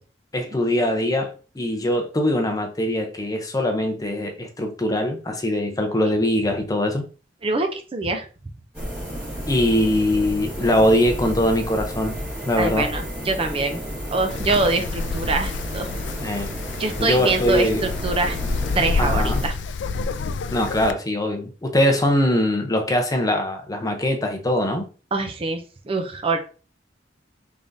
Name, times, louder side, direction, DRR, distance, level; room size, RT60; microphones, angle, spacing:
voice 1, 0.3-7.0 9.5-12.2 12.5-12.9 16.2-16.5 17.0-17.8 19.0-19.4 20.5-24.8, left 1 dB, 20° left, 0.6 m, -22 dB
voice 2, 7.4-8.3 12.6-13.8 14.1-15.9 16.8-18.4 18.8-19.5 25.1-26.4, right 3 dB, 30° right, 0.4 m, -24 dB
sound 1, 8.7-19.5, equal, 10° right, 2.1 m, -32 dB
Wind, 14.3-20.9, left 4 dB, 75° left, 0.3 m, -28 dB
3.7 x 3.4 x 2.6 m
head